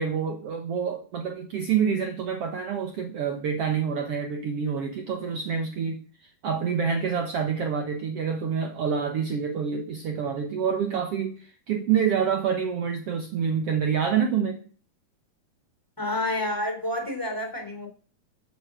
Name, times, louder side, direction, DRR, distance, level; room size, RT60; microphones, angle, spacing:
voice 1, 0.0-14.6, right 7 dB, 70° right, 1.4 m, -27 dB
voice 2, 16.0-17.9, left 1 dB, 5° left, 3.4 m, -29 dB
14.5 x 7.6 x 6.2 m
omnidirectional pair, 4.4 m